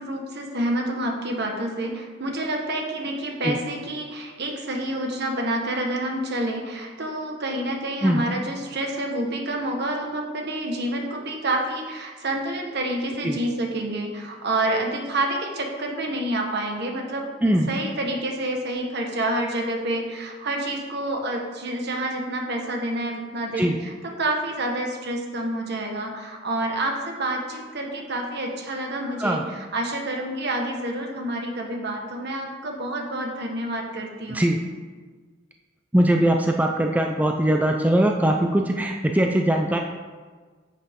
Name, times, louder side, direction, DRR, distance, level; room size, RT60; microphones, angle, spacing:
voice 1, 0.0-34.5, right 1 dB, 60° right, 2 dB, 1.5 m, -28 dB
voice 2, 35.9-39.8, right 1 dB, 10° right, 2 dB, 0.5 m, -21 dB
9.9 x 8.0 x 3.7 m, 1.5 s
head